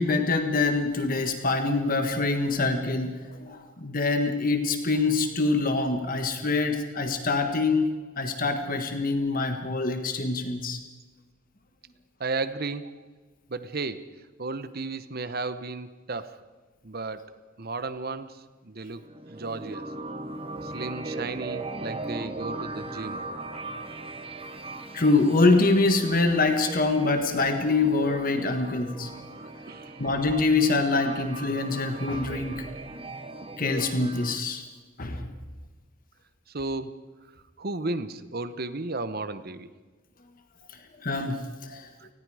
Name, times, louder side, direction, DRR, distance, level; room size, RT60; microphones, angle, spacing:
voice 1, 0.0-10.8 24.9-29.1 30.0-32.7 33.6-34.6 35.0-35.3 41.0-41.9, left 3 dB, 45° left, 6 dB, 1.6 m, -25 dB
voice 2, 12.2-13.0 13.5-14.0 14.4-16.4 16.8-19.0 19.3-19.9 20.6-23.2 29.4-30.0 36.5-37.0 37.6-39.7 41.7-42.1, right 3 dB, 50° right, 13 dB, 1.0 m, -34 dB
sound 1, 19.0-34.4, right 2 dB, 30° right, 1.3 m, -38 dB
29.0 x 20.0 x 5.0 m, 1.3 s
head